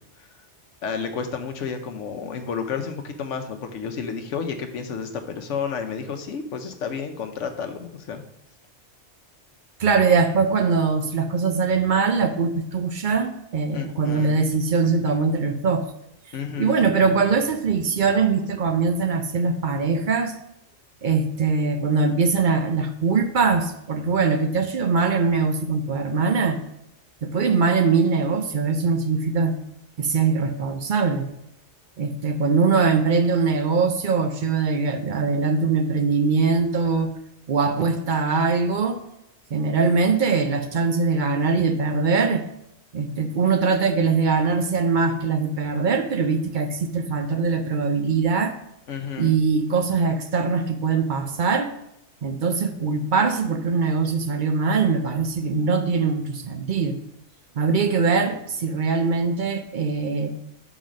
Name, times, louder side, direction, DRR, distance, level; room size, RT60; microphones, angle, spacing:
voice 1, 0.8-8.2 13.7-14.4 16.3-16.8 48.9-49.4, left 6 dB, 90° left, 6 dB, 1.1 m, -31 dB
voice 2, 9.8-15.9 16.6-20.3 21.0-26.6 27.2-29.5 30.0-31.3 32.0-37.1 37.5-39.0 39.5-42.4 42.9-48.6 49.2-51.7 52.2-57.0 57.6-60.3, right 4 dB, 50° right, 7 dB, 0.6 m, -22 dB
7.3 x 4.0 x 5.1 m, 0.82 s
omnidirectional pair, 1.2 m